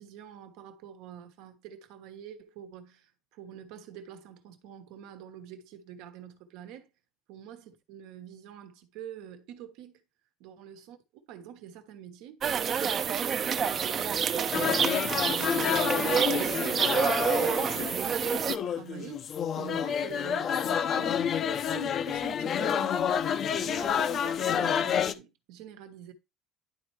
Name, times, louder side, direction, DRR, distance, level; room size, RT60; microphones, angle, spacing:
voice 1, 0.0-6.9 7.3-10.0 10.4-11.0 11.3-12.4 12.8-14.2 14.6-16.5 17.4-26.1, right 9 dB, 75° right, 1.2 m, -46 dB
sound 1, 12.4-18.6, right 7 dB, 35° right, 0.6 m, -28 dB
sound 2, 14.5-25.1, left 8 dB, 40° left, 0.5 m, -29 dB
11.0 x 4.4 x 3.2 m
cardioid pair, 130°, 0 cm